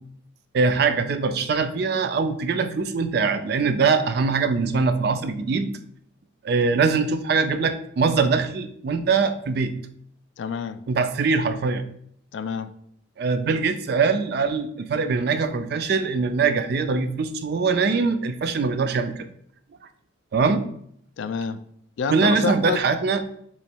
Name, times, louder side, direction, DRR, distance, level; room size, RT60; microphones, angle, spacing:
voice 1, 0.5-5.7 6.4-9.7 10.9-11.8 13.2-19.1 20.3-20.6 22.1-23.4, right 4 dB, 50° right, 10 dB, 0.4 m, -22 dB
voice 2, 10.4-10.8 12.3-12.7 21.2-21.6 22.0-22.8, left 5 dB, 65° left, 13 dB, 0.3 m, -28 dB
3.8 x 3.1 x 4.3 m, 0.68 s
head